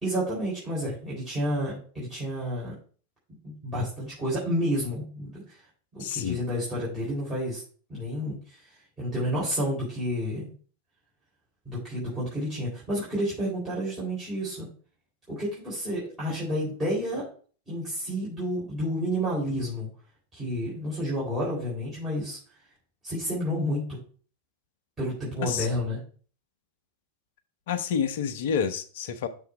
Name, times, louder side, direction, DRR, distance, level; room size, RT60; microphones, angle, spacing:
voice 1, 0.0-2.7 3.4-5.6 5.9-7.6 7.9-8.6 9.0-10.5 11.7-14.7 15.3-17.3 17.7-19.9 20.3-22.4 23.0-24.0 25.0-26.0, equal, 15° right, -9 dB, 3.7 m, -30 dB
voice 2, 6.0-6.4 25.4-25.7 27.7-29.3, left 7 dB, 55° left, 9 dB, 0.7 m, -28 dB
6.8 x 3.6 x 4.9 m, 0.41 s
figure-of-eight pair, 90°, 0 cm